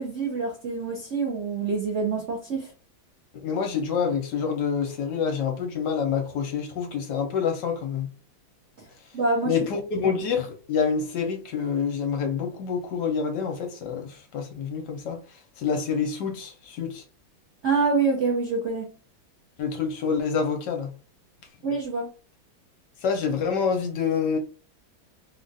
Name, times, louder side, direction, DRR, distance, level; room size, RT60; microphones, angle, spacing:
voice 1, 0.0-2.7 9.1-9.6 17.6-18.9 21.6-22.1, right 4 dB, 60° right, 0.7 m, -26 dB
voice 2, 3.3-8.1 9.4-15.2 15.6-17.0 19.6-20.9 23.0-24.4, left 6 dB, 65° left, 1.3 m, -27 dB
3.5 x 2.4 x 2.6 m
omnidirectional pair, 2.1 m